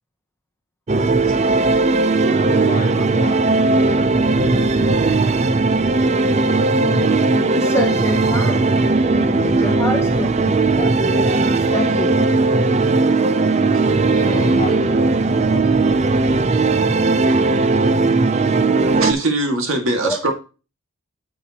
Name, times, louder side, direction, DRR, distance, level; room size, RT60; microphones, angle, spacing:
sound 1, 0.9-19.1, right 3 dB, 30° right, 0.4 m, -17 dB
voice 1, 1.3-1.8 2.9-3.0 13.6-14.6 18.8-20.3, right 2 dB, 65° right, 2.0 m, -25 dB
voice 2, 2.3-4.6 9.3-9.4 14.2-17.3, left 2 dB, 30° left, 1.8 m, -35 dB
voice 3, 6.8-8.8 9.1-12.2 20.0-20.2, left 1 dB, 10° left, 0.9 m, -27 dB
8.5 x 7.2 x 2.9 m
head